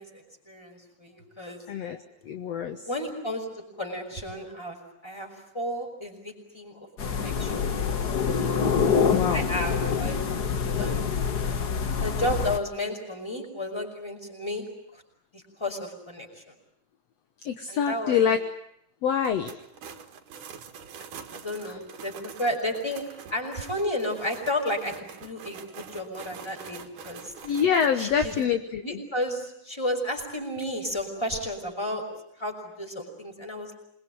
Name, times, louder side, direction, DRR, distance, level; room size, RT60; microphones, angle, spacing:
voice 1, 0.0-1.6 2.9-3.5 3.8-4.8 5.0-7.8 8.1-8.3 9.3-10.2 10.8-11.1 12.0-14.7 14.9-15.0 15.3-16.5 17.7-18.3 21.0-21.1 21.3-23.0 23.3-27.3 28.0-28.3 28.8-32.0 32.4-33.7, left 1 dB, 10° left, 3 dB, 5.5 m, -32 dB
voice 2, 1.7-2.0 2.2-2.9 9.1-9.5 17.4-18.4 19.0-19.5 21.6-21.8 27.4-29.0, left 7 dB, 60° left, 7 dB, 2.2 m, -25 dB
sound 1, 7.0-12.6, left 6 dB, 40° left, 1.5 m, -26 dB
sound 2, 19.2-28.5, right 6 dB, 85° right, 3.3 m, -45 dB
27.5 x 22.0 x 9.4 m, 0.75 s
omnidirectional pair, 3.5 m